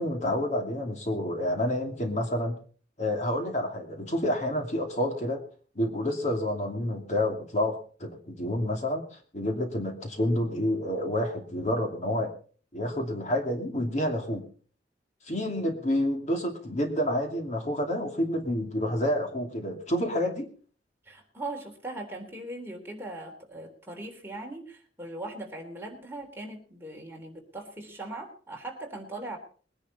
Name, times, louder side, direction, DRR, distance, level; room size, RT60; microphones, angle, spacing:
voice 1, 0.0-2.6 3.0-5.4 5.7-12.3 12.7-14.4 15.2-20.5, left 1 dB, 40° left, 3 dB, 2.6 m, -29 dB
voice 2, 21.0-29.4, right 2 dB, 15° right, 0 dB, 3.5 m, -40 dB
22.0 x 10.5 x 4.2 m, 0.42 s
head